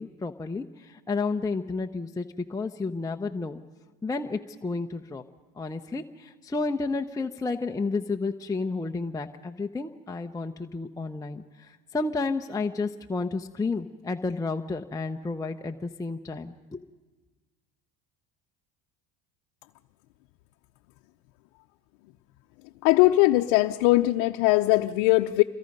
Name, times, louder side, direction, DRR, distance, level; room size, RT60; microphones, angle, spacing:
voice 1, 0.0-3.6 4.0-5.2 5.6-16.8, left 3 dB, 10° left, 3 dB, 0.7 m, -31 dB
voice 2, 22.8-25.4, left 18 dB, 75° left, 5 dB, 0.7 m, -20 dB
27.0 x 22.5 x 5.4 m, 1.3 s
supercardioid pair, 90°, 39 cm